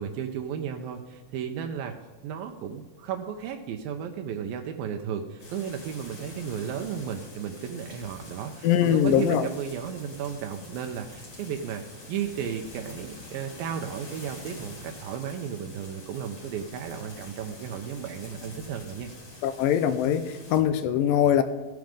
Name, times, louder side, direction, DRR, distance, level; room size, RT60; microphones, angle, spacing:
voice 1, 0.0-2.0 2.2-19.1, right 8 dB, 80° right, 4 dB, 2.5 m, -34 dB
sound 1, 5.4-20.6, left 2 dB, 50° left, 3.8 m, -46 dB
voice 2, 8.6-9.5 19.4-21.4, left 10 dB, 80° left, 11 dB, 2.3 m, -22 dB
16.0 x 9.5 x 5.1 m, 1.2 s
omnidirectional pair, 4.2 m